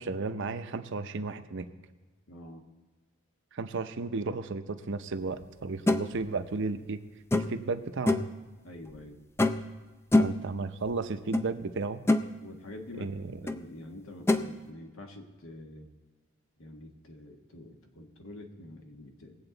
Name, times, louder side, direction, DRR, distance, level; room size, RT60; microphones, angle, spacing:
voice 1, 0.0-1.7 3.5-7.0 7.3-8.3 10.2-12.0 13.0-13.5, right 3 dB, 60° right, 10 dB, 0.7 m, -34 dB
voice 2, 2.3-2.7 8.6-9.2 12.4-13.1 13.4-15.9 16.6-19.4, left 1 dB, 80° left, 3 dB, 1.5 m, -46 dB
sound 1, 5.9-6.0 7.3-7.7 8.1-8.3 9.4-9.7 10.1-10.5 11.3-11.5 11.8-12.3 13.5-13.6 14.3-14.4, left 2 dB, 10° left, 0.4 m, -25 dB
19.5 x 8.0 x 4.0 m, 1.3 s
head